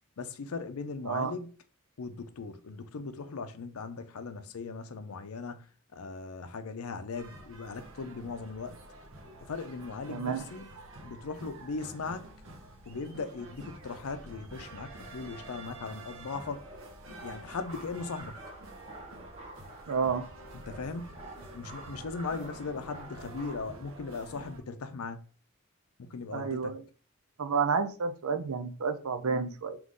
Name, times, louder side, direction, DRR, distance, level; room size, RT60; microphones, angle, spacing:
voice 1, 0.2-1.5 2.0-8.8 9.5-10.7 11.0-12.3 12.9-16.6 17.0-18.4 20.7-21.2 21.5-25.3 26.0-26.8, left 4 dB, 80° left, 0.5 m, -38 dB
sound 1, 7.1-24.6, right 2 dB, 60° right, 1.0 m, -49 dB
voice 2, 10.1-10.5 19.9-20.2 26.3-26.8 27.4-29.8, right 5 dB, 80° right, 0.5 m, -30 dB
sound 2, 16.6-23.6, right 1 dB, 25° right, 0.9 m, -49 dB
3.7 x 3.0 x 3.6 m
head